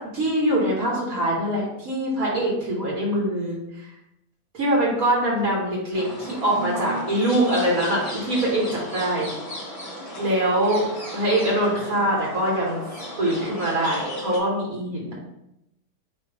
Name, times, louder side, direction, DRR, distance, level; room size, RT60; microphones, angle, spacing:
voice 1, 0.0-3.6 4.5-9.3 10.2-10.9 11.1-12.8 13.2-15.1, right 1 dB, 65° right, -3 dB, 1.9 m, -23 dB
sound 1, 5.9-14.4, right 1 dB, 25° left, 1.8 m, -35 dB
8.9 x 3.1 x 3.5 m, 0.84 s
omnidirectional pair, 1.6 m